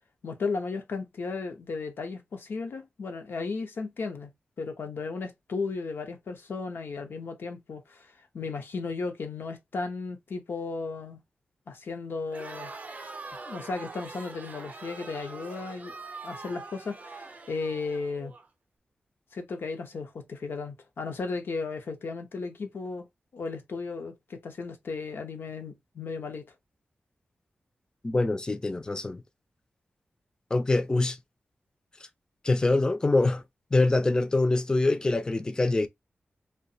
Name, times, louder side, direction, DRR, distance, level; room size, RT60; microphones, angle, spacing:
voice 1, 0.2-4.3 4.6-11.2 11.7-12.7 13.5-15.9 16.2-18.3 19.3-23.1 23.3-26.5, left 4 dB, 75° left, 0.7 m, -35 dB
Crowd, 12.3-18.5, right 3 dB, 45° right, 0.5 m, -43 dB
voice 2, 28.0-29.2 30.5-31.2 32.4-33.4 33.7-35.9, left 2 dB, 20° left, 0.3 m, -24 dB
2.8 x 2.2 x 2.6 m
wide cardioid pair, 115°, 4 cm